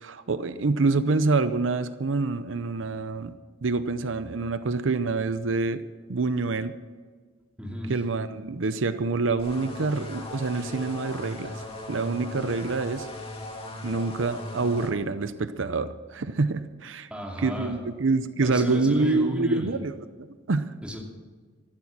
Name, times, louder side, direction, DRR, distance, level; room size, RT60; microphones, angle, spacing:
voice 1, 0.0-3.3 3.6-5.8 6.1-6.7 7.9-11.6 11.9-13.1 13.8-17.1 17.4-20.0 20.5-20.7, right 3 dB, 80° right, 12 dB, 0.7 m, -26 dB
voice 2, 7.6-8.0 17.1-17.8 18.4-19.7 20.8-21.0, equal, 5° right, -1 dB, 2.8 m, -33 dB
sound 1, 9.4-14.9, left 1 dB, 30° left, 2.2 m, -38 dB
14.0 x 12.0 x 6.1 m, 1.5 s
head